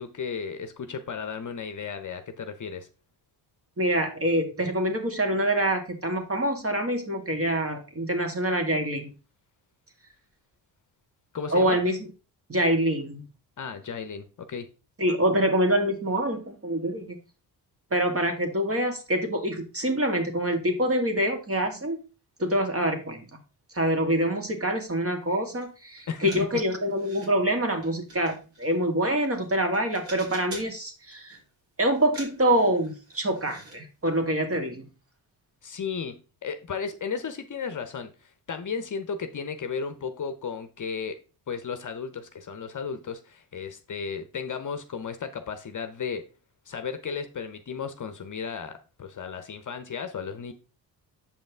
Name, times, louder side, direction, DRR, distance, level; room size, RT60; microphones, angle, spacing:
voice 1, 0.0-2.9 11.3-11.8 13.6-14.7 26.1-26.5 35.6-41.2 41.5-46.2 46.7-50.5, left 6 dB, 40° left, 0.9 m, -34 dB
voice 2, 3.8-9.1 11.5-12.0 12.5-13.3 15.0-17.2 17.9-22.0 22.4-23.2 23.7-31.4 31.8-34.9, right 1 dB, 30° right, 1.9 m, -25 dB
sound 1, 25.6-25.7 26.0-27.3 27.8-29.5 29.7-30.8 31.1-31.5 31.9-33.8 34.0-34.2 34.5-34.6, right 1 dB, 70° right, 3.3 m, -46 dB
6.9 x 5.3 x 3.5 m
supercardioid pair, 50°, 46 cm